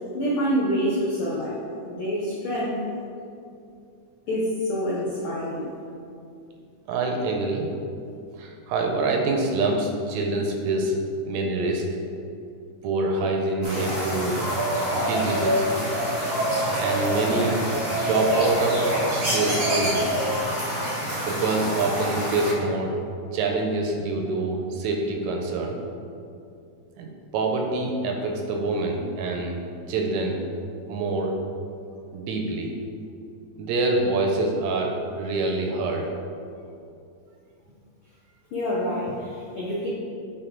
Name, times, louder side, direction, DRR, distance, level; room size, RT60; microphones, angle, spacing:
voice 1, 0.1-1.6 1.8-2.7 4.3-5.7 38.5-39.9, equal, 80° left, -5 dB, 1.2 m, -26 dB
voice 2, 6.9-7.7 8.4-11.0 11.3-11.8 12.8-14.4 14.9-15.7 16.8-20.1 21.3-23.0 23.3-25.8 27.0-29.6 29.9-30.4 30.9-31.4 32.1-32.7 33.6-36.1, right 3 dB, 80° right, 2 dB, 1.8 m, -26 dB
sound 1, 13.6-22.5, equal, 40° right, 0.8 m, -26 dB
6.6 x 4.3 x 3.7 m, 2.5 s
omnidirectional pair, 3.5 m